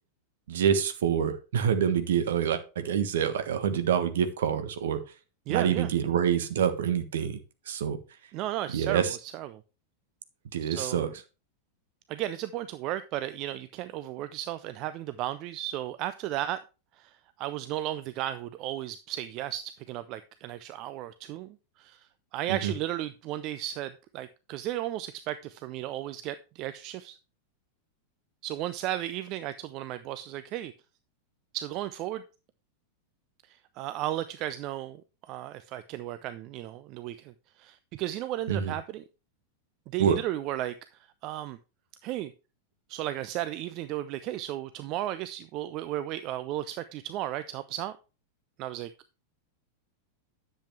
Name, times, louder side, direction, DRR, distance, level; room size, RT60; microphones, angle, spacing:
voice 1, 0.5-5.0 5.5-7.4 7.7-8.0 8.7-9.2 10.5-11.1 22.5-22.7 38.5-38.7 40.0-40.2, right 8 dB, 60° right, 9 dB, 1.4 m, -26 dB
voice 2, 5.5-5.9 8.3-9.6 10.6-11.1 12.1-16.6 17.0-27.2 28.4-30.7 31.5-32.2 33.5-35.0 35.3-39.0 39.9-40.7 41.2-41.6 42.0-42.3 42.9-47.9 48.6-48.9, right 13 dB, 40° right, 13 dB, 0.5 m, -34 dB
10.5 x 7.7 x 3.2 m, 0.31 s
figure-of-eight pair, 90°, 0 cm